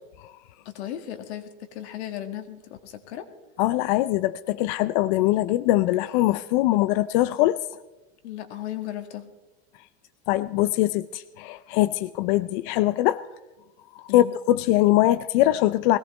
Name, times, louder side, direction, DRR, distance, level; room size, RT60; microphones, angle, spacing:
voice 1, 0.7-3.3 8.2-9.3 14.1-14.3, left 12 dB, 80° left, 2.0 m, -36 dB
voice 2, 3.6-7.6 10.3-13.2 14.1-16.0, left 15 dB, 50° left, 0.4 m, -22 dB
21.5 x 17.5 x 3.2 m
supercardioid pair, 160°, 33 cm